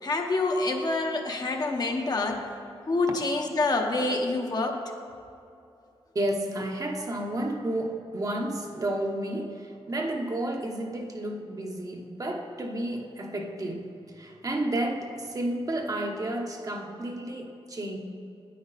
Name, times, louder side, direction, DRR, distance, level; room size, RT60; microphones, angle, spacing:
voice 1, 0.0-2.5 2.9-4.8, left 2 dB, 45° left, 2 dB, 1.0 m, -27 dB
voice 2, 6.1-18.0, right 1 dB, 35° right, 2 dB, 0.9 m, -31 dB
9.4 x 9.3 x 4.1 m, 2.6 s
wide cardioid pair, 105°, 10 cm